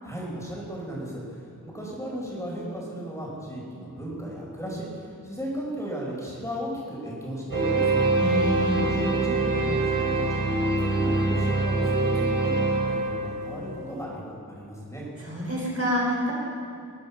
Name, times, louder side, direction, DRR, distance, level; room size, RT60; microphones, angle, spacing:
voice 1, 0.0-8.0 8.3-15.0, equal, 10° left, -5 dB, 5.0 m, -36 dB
sound 1, 7.5-13.8, right 2 dB, 75° right, 4.5 m, -24 dB
voice 2, 8.2-8.7 15.3-16.3, equal, 40° right, -4 dB, 4.0 m, -27 dB
21.0 x 8.4 x 7.0 m, 2.4 s
wide cardioid pair, 90°, 34 cm